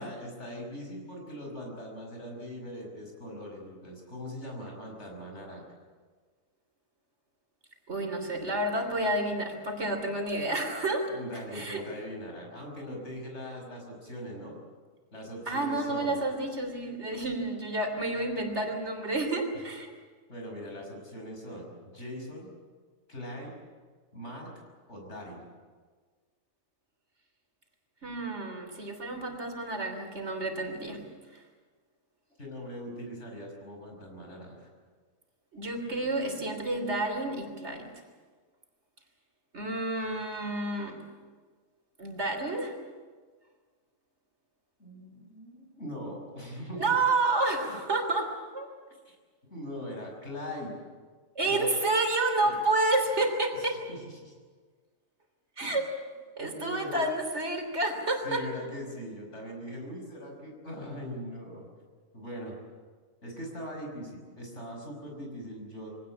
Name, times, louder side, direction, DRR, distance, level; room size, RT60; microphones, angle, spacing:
voice 1, 0.0-5.6 11.0-14.6 15.1-16.2 20.3-22.5 23.1-23.5 24.1-24.5 24.9-25.5 32.4-34.7 44.8-46.9 47.7-47.8 49.1-49.2 49.5-50.7 51.4-51.7 52.4-52.6 53.5-54.3 55.6-55.8 56.6-57.1 58.2-61.6 62.1-62.6 63.2-65.9, equal, 55° left, 1 dB, 6.3 m, -41 dB
voice 2, 7.9-11.1 11.5-11.8 15.5-19.9 28.0-31.0 31.3-31.4 35.5-37.9 39.5-41.0 42.0-42.8 46.8-48.7 51.4-53.8 55.6-55.9 56.4-58.4, right 2 dB, 55° right, 4 dB, 3.6 m, -30 dB
24.0 x 17.5 x 8.7 m, 1.5 s
omnidirectional pair, 1.4 m